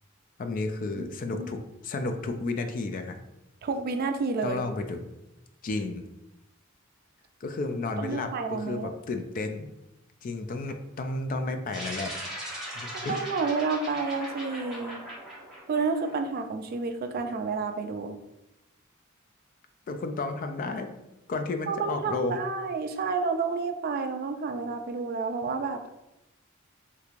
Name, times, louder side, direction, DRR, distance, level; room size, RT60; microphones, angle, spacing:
voice 1, 0.4-3.2 4.4-5.0 5.6-6.1 7.4-9.7 10.2-12.1 12.8-13.2 19.9-20.9 21.3-22.4, left 3 dB, 45° left, 7 dB, 0.3 m, -32 dB
voice 2, 1.0-1.5 3.6-4.7 8.0-8.9 12.9-15.0 15.7-18.2 21.7-25.8, right 4 dB, 50° right, 7 dB, 0.3 m, -30 dB
sound 1, 11.7-16.4, right 1 dB, 5° right, 0.9 m, -39 dB
3.3 x 3.1 x 2.4 m, 0.92 s
head